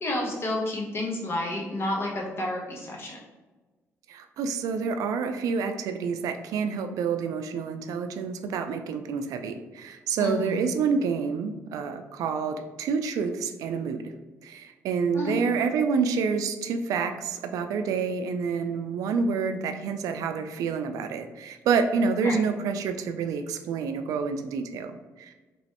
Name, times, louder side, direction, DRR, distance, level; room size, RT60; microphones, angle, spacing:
voice 1, 0.0-3.2 10.2-10.6 15.1-15.4 22.2-22.4, left 1 dB, 45° left, -2 dB, 1.0 m, -30 dB
voice 2, 4.1-14.1 14.4-25.3, right 5 dB, 85° right, 8 dB, 0.4 m, -28 dB
3.0 x 3.0 x 2.9 m, 1.2 s
cardioid pair, 100°, 6 cm